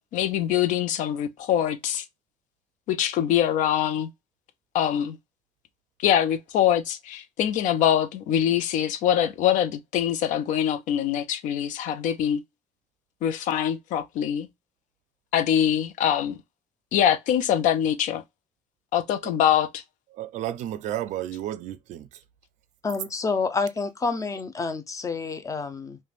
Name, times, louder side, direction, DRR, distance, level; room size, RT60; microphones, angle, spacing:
voice 1, 0.0-2.1 2.9-4.1 4.7-5.2 6.0-12.4 13.2-14.5 15.3-16.4 16.9-18.2 18.9-19.8, left 10 dB, 75° left, 0.4 m, -24 dB
voice 2, 20.1-22.2, right 12 dB, 70° right, 0.4 m, -32 dB
voice 3, 22.8-26.0, left 4 dB, 25° left, 0.5 m, -28 dB
3.1 x 2.2 x 2.3 m
cardioid pair, 105°, 13 cm